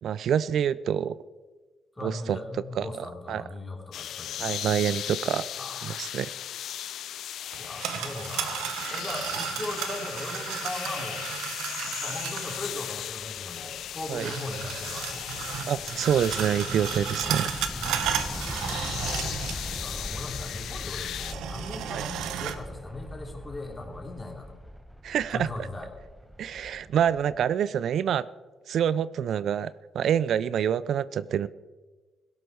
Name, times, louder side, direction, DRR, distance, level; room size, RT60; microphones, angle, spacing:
voice 1, 0.0-1.2 2.0-2.4 2.8-3.4 4.4-5.4 5.8-6.3 8.8-9.0 14.1-14.3 15.7-17.5 21.9-22.0 25.0-25.5 26.4-28.3 28.7-31.5, right 9 dB, 70° right, 18 dB, 0.4 m, -27 dB
voice 2, 1.9-4.7 5.6-6.2 7.6-11.3 12.0-15.5 18.1-24.6 25.3-25.9, left 2 dB, 20° left, 2 dB, 3.1 m, -39 dB
sound 1, 3.9-21.3, left 11 dB, 75° left, 0.5 m, -37 dB
sound 2, 7.5-12.7 14.2-19.9 20.1-20.2 21.1-22.6, right 9 dB, 90° right, 1.1 m, -34 dB
sound 3, 11.9-27.5, equal, ahead, 1.2 m, -41 dB
16.5 x 11.5 x 4.6 m, 1.3 s
cardioid pair, 90°, 0 cm